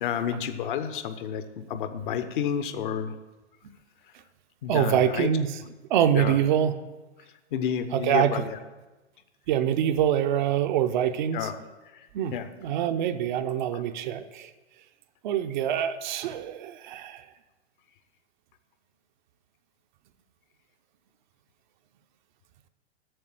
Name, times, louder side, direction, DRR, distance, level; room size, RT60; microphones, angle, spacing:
voice 1, 0.0-3.2 4.6-5.3 6.1-6.4 7.5-8.6 11.3-11.5 11.9-12.1 12.3-12.5 13.7-13.8, left 8 dB, 45° left, 10 dB, 0.9 m, -30 dB
voice 2, 4.7-5.6 5.9-6.8 7.9-8.5 9.5-11.5 12.1-14.5 15.2-17.3, right 10 dB, 45° right, 9 dB, 0.6 m, -25 dB
7.8 x 7.2 x 8.4 m, 1.2 s
figure-of-eight pair, 100°, 34 cm